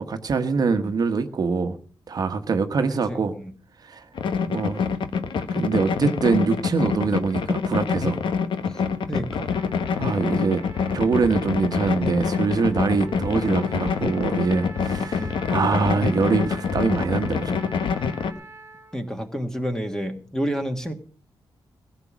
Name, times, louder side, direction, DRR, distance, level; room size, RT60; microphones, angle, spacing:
voice 1, 0.0-1.8 2.1-3.4 3.8-4.1 4.5-4.9 5.5-8.2 10.0-10.6 10.9-17.7, right 5 dB, 45° right, 8 dB, 1.2 m, -24 dB
voice 2, 2.8-3.5 8.6-8.8 9.1-9.5 13.0-13.2 15.2-15.5 18.0-18.1 18.3-18.4 18.9-20.9, equal, 5° left, 6 dB, 1.6 m, -30 dB
sound 1, 4.2-18.3, left 6 dB, 70° left, 1.2 m, -26 dB
Trumpet, 9.5-19.0, right 3 dB, 25° right, 1.8 m, -45 dB
16.0 x 8.2 x 6.2 m, 0.42 s
wide cardioid pair, 135°, 9 cm